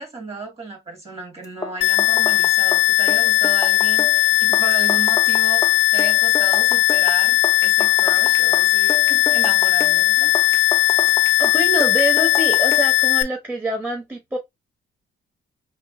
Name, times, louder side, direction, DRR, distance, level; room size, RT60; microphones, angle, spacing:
voice 1, 0.0-10.3, right 3 dB, 30° right, 1.8 m, -34 dB
sound 1, 1.4-13.0, left 3 dB, 15° left, 0.7 m, -31 dB
sound 2, 1.8-13.2, left 18 dB, 65° left, 0.5 m, -17 dB
voice 2, 11.4-14.4, right 1 dB, 10° right, 1.2 m, -25 dB
3.1 x 2.5 x 3.6 m
cardioid pair, 90°, 20 cm